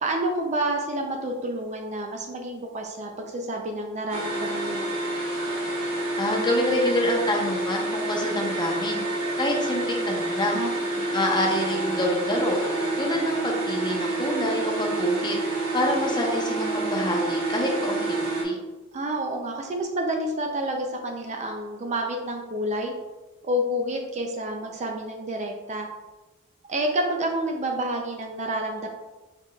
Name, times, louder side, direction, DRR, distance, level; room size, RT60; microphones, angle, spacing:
voice 1, 0.0-5.0 10.5-11.1 18.9-22.9 23.4-25.9 26.7-28.9, right 1 dB, 30° right, 3 dB, 0.4 m, -29 dB
sound 1, 4.1-18.4, right 2 dB, 85° right, 1.3 m, -28 dB
voice 2, 5.9-9.0 9.4-10.6 11.1-12.6 13.0-15.4 15.7-18.6, left 1 dB, 20° left, -1 dB, 0.8 m, -27 dB
4.8 x 4.6 x 2.3 m, 1.2 s
head